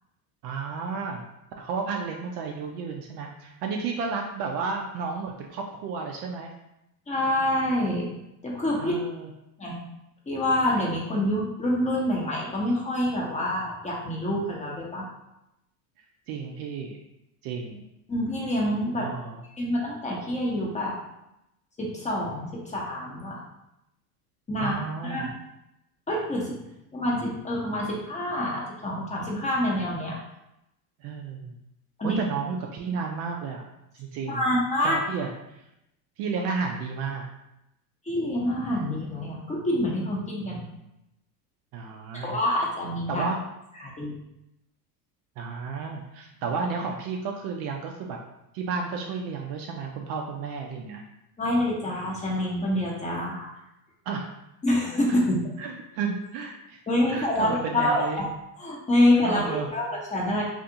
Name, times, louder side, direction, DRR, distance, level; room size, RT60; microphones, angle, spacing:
voice 1, 0.4-1.2 1.6-6.5 8.8-9.3 16.3-17.0 17.4-17.8 18.9-19.4 24.6-25.3 31.0-31.6 32.0-33.7 34.0-34.4 34.8-35.6 36.2-37.2 40.4-40.8 41.7-42.4 43.1-43.4 45.4-48.2 48.5-51.0 54.1-54.3 55.6-56.8 57.1-58.2 59.2-59.7, right 5 dB, 45° right, 1 dB, 0.4 m, -32 dB
voice 2, 7.1-8.1 8.4-9.0 9.6-9.8 10.3-15.1 18.1-19.1 19.6-20.9 21.8-23.4 24.5-24.7 25.0-25.2 26.1-26.6 26.9-30.2 32.0-32.2 34.3-35.0 38.1-40.6 42.2-43.2 43.8-44.2 51.4-53.5 54.6-55.4 56.9-58.3 58.6-60.4, left 1 dB, 15° left, -4 dB, 0.7 m, -26 dB
2.5 x 2.4 x 2.7 m, 0.87 s
hypercardioid pair, 90°, 50 cm